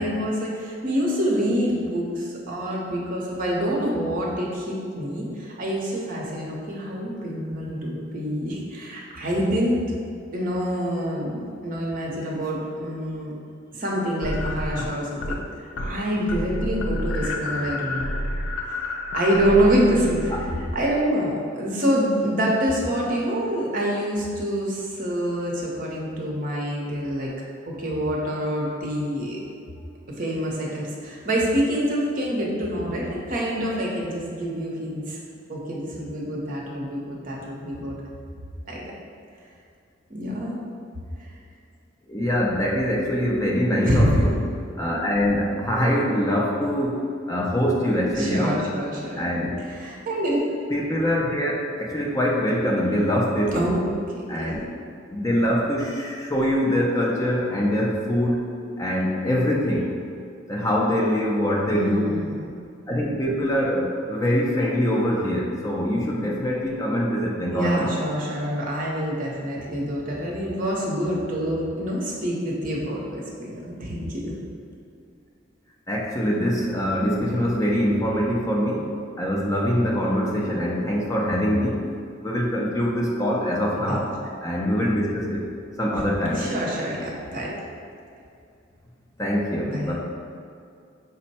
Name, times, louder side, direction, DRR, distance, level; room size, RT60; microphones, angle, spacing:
voice 1, 0.0-9.8 10.3-13.3 13.7-15.4 15.8-18.1 18.7-18.8 19.1-20.4 20.7-27.3 27.7-29.4 30.2-35.2 35.5-38.0 38.7-38.9 40.1-40.6 43.8-44.2 48.1-49.3 49.6-50.4 53.5-54.5 61.7-62.4 67.5-74.3 83.8-84.4 86.3-87.6 89.6-90.0, equal, 45° right, -3 dB, 0.8 m, -26 dB
sound 1, 14.2-15.4 15.7-16.0 16.3-21.0, left 1 dB, 90° left, 0.4 m, -30 dB
voice 2, 42.1-44.3 44.8-48.6 49.2-49.6 50.7-53.7 54.3-54.6 55.1-58.5 58.8-59.9 60.5-62.2 62.9-67.9 75.9-81.9 82.2-84.1 84.4-85.5 85.8-86.5 89.2-90.0, equal, 15° left, -3 dB, 0.4 m, -23 dB
5.2 x 2.1 x 4.1 m, 2.4 s
head